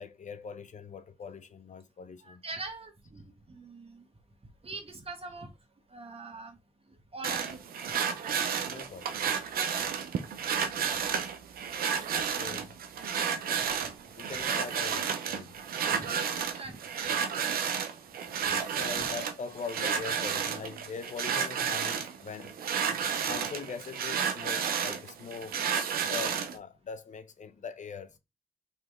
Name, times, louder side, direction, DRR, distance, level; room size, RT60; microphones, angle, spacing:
voice 1, 0.0-2.4 8.6-9.3 12.3-12.7 14.2-15.6 18.7-22.5 23.2-25.6 26.0-28.2, left 5 dB, 55° left, 0.6 m, -42 dB
voice 2, 2.2-4.1 4.6-5.5 5.9-6.6 6.8-7.9 10.1-10.2 10.9-11.0 12.1-12.2 15.9-16.1 16.3-17.7 18.4-18.5 19.0-19.1, right 3 dB, 40° right, 1.3 m, -44 dB
sound 1, 7.2-26.6, right 7 dB, 85° right, 0.5 m, -31 dB
4.0 x 3.1 x 3.5 m
cardioid pair, 50°, 15 cm